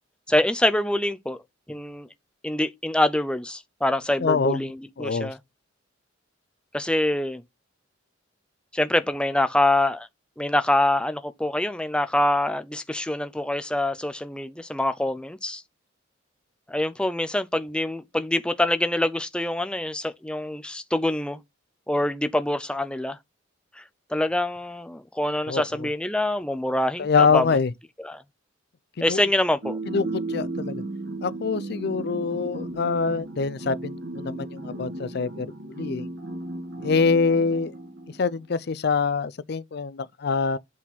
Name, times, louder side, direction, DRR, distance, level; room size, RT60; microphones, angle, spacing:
voice 1, 0.3-1.4 1.7-2.1 2.4-5.4 6.7-7.4 8.7-10.1 10.4-15.6 16.7-21.4 21.9-23.2 23.8-23.9 24.1-27.5 28.0-28.2 29.0-29.8, left 1 dB, 5° left, 0.5 m, -25 dB
voice 2, 4.2-4.6 5.0-5.3 25.5-25.6 27.0-27.7 29.0-29.2 29.9-30.8 31.2-36.1 36.8-37.7 38.2-40.6, left 5 dB, 55° left, 0.5 m, -25 dB
sound 1, 29.6-38.4, right 2 dB, 65° right, 2.0 m, -35 dB
8.4 x 4.3 x 3.7 m
head